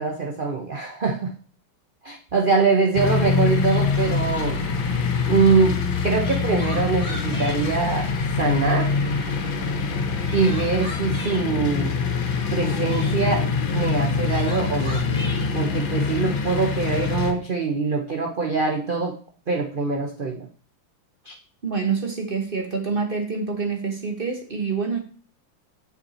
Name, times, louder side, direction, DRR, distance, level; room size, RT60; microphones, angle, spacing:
voice 1, 0.0-1.3 2.0-4.6 5.3-8.1 8.4-8.9 10.3-11.9 12.5-13.5 13.7-15.1 15.5-19.2 19.5-20.5 21.2-21.3, right 4 dB, 55° right, 2 dB, 0.5 m, -23 dB
sound 1, 2.9-17.3, left 4 dB, 75° left, 1.6 m, -24 dB
Crying sobbing, 3.2-3.3 3.6-4.7 5.9-7.6 8.1-8.9 9.9-11.4 12.1-13.2 13.9-15.5, left 1 dB, 5° left, 1.6 m, -39 dB
voice 2, 21.6-25.0, right 5 dB, 35° right, 3 dB, 1.1 m, -26 dB
7.8 x 5.3 x 4.2 m, 0.43 s
omnidirectional pair, 2.2 m